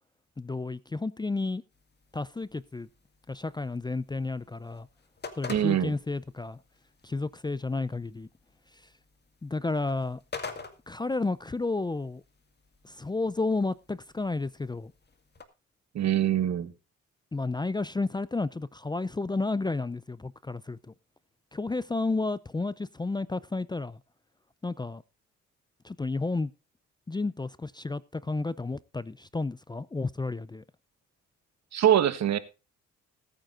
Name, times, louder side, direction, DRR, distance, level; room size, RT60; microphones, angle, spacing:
voice 1, 0.4-1.6 2.1-2.9 3.3-4.9 5.4-6.6 7.0-8.3 8.7-8.8 9.4-10.2 10.9-12.2 12.8-14.9 17.3-20.8 21.5-24.0 24.6-25.0 25.8-26.5 27.1-30.6, left 3 dB, 15° left, 0.5 m, -31 dB
sound 1, 1.7-15.4, left 5 dB, 35° left, 2.1 m, -48 dB
voice 2, 5.5-5.9 15.9-16.7 31.7-32.4, right 10 dB, 60° right, 1.5 m, -24 dB
20.0 x 9.1 x 2.5 m
cardioid pair, 90°, 30 cm